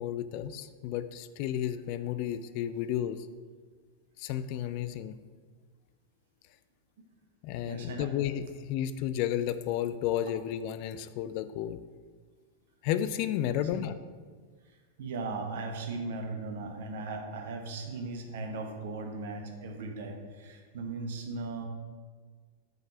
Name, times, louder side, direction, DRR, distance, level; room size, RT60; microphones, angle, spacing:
voice 1, 0.0-3.3 4.2-5.2 7.4-11.8 12.8-14.0, left 11 dB, 45° left, 12 dB, 0.4 m, -32 dB
voice 2, 7.6-8.1 13.4-13.7 15.0-21.7, right 3 dB, 55° right, 4 dB, 1.1 m, -37 dB
5.8 x 5.3 x 6.1 m, 1.5 s
figure-of-eight pair, 90°, 0 cm